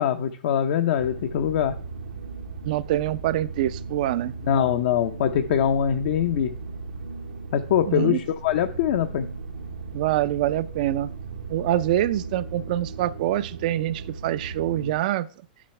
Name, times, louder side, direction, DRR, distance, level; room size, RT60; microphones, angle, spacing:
voice 1, 0.0-1.7 4.5-6.5 7.5-9.3, left 9 dB, 60° left, 6 dB, 0.7 m, -23 dB
sound 1, 1.0-14.9, right 4 dB, 80° right, 1.3 m, -37 dB
voice 2, 2.6-4.3 7.9-8.2 9.9-11.1 11.5-15.3, right 13 dB, 60° right, 16 dB, 0.6 m, -25 dB
8.4 x 7.3 x 3.3 m, 0.41 s
hypercardioid pair, 110°, 5 cm